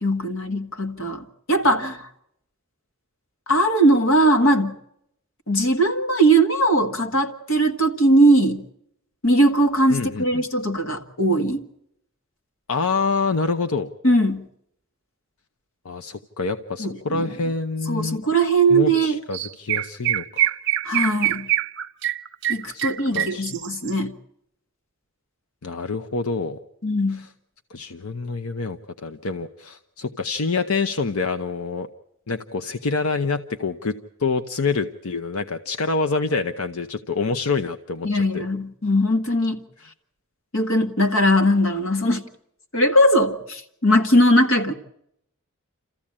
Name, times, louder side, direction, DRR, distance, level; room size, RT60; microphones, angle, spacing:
voice 1, 0.0-2.1 3.5-4.7 5.5-8.6 9.2-11.6 14.0-14.5 16.8-17.2 17.9-19.2 20.8-21.5 22.5-24.2 26.8-27.3 38.0-39.6 40.5-42.2 42.7-44.7, right 1 dB, 65° left, 1.6 m, -20 dB
voice 2, 9.9-10.4 12.7-13.9 15.8-18.2 18.7-20.5 22.7-22.9 23.1-23.5 25.6-26.6 27.2-27.3 27.7-31.9 32.3-38.4, left 4 dB, 90° left, 0.8 m, -26 dB
Chirp tweet, 18.9-19.1 19.3-23.9, right 13 dB, 55° right, 0.8 m, -24 dB
28.5 x 14.5 x 8.7 m
head